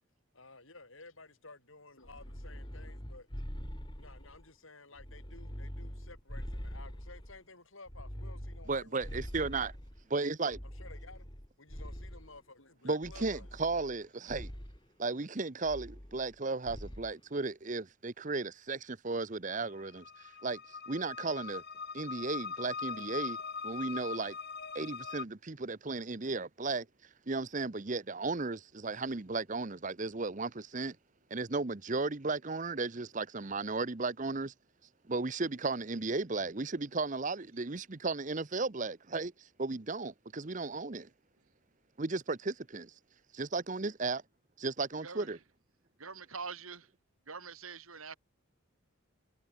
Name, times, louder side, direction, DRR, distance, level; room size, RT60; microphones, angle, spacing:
voice 1, 0.3-3.3 4.0-9.4 10.6-11.3 11.6-13.5, left 3 dB, 70° left, 7.2 m, -54 dB
sound 1, 2.0-4.5 4.9-7.4 7.9-10.0 10.5-12.4 13.0-14.0 14.3-14.8 15.6-16.4 16.7-17.1, equal, 20° left, 3.8 m, -44 dB
voice 2, 8.7-9.7 10.1-10.6 12.8-14.5 15.0-21.6 21.9-23.4 23.6-24.4 24.7-26.9 27.3-31.0 31.3-34.5 35.1-41.1 42.0-42.9 43.3-44.2 44.6-45.4, right 3 dB, 35° right, 0.8 m, -35 dB
sound 2, 19.5-25.2, left 5 dB, 50° left, 5.7 m, -41 dB
voice 3, 45.0-45.4 46.0-46.9 47.3-48.2, right 5 dB, 80° right, 3.7 m, -44 dB
head